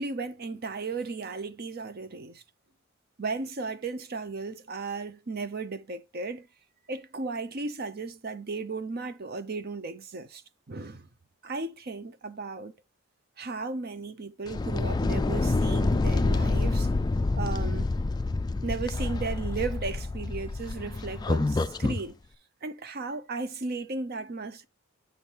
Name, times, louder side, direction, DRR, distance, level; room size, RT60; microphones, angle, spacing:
voice 1, 0.0-2.4 3.2-6.5 6.9-11.1 11.4-12.7 13.4-16.9 17.4-17.9 18.6-22.2 22.6-24.7, right 3 dB, 50° right, 0.7 m, -35 dB
sound 1, 14.5-22.0, left 3 dB, 20° left, 0.3 m, -27 dB
7.6 x 5.5 x 2.9 m
head